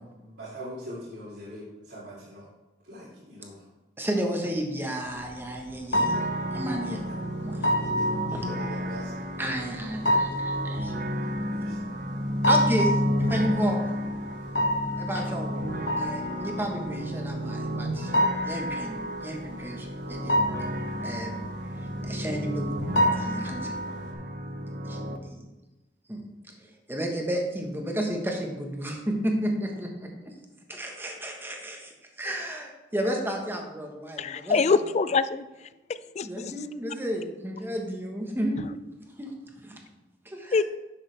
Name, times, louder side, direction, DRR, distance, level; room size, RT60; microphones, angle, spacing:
voice 1, 0.0-2.5 2.8-3.7 6.8-7.2 7.8-9.1 10.9-11.8, equal, 70° right, 2.6 m, -43 dB
voice 2, 4.0-6.2 6.5-7.0 7.4-7.9 8.3-8.4 9.4-10.9 12.5-13.8 15.0-15.5 16.0-18.1 18.4-20.7 21.0-21.4 22.0-22.7 23.1-23.9 24.8-25.0 25.3-25.4 26.1-26.2 26.6-30.3 30.7-34.8 36.2-38.7 39.2-39.3 39.6-39.8 40.2-40.6, right 1 dB, 10° right, 1.2 m, -32 dB
sound 1, 5.0-24.1, equal, 75° left, 1.2 m, -29 dB
sound 2, 6.0-25.2, equal, 55° right, 0.8 m, -32 dB
voice 3, 34.2-35.5 35.9-36.5 40.5-40.6, left 4 dB, 40° left, 0.3 m, -24 dB
10.0 x 7.3 x 3.4 m
head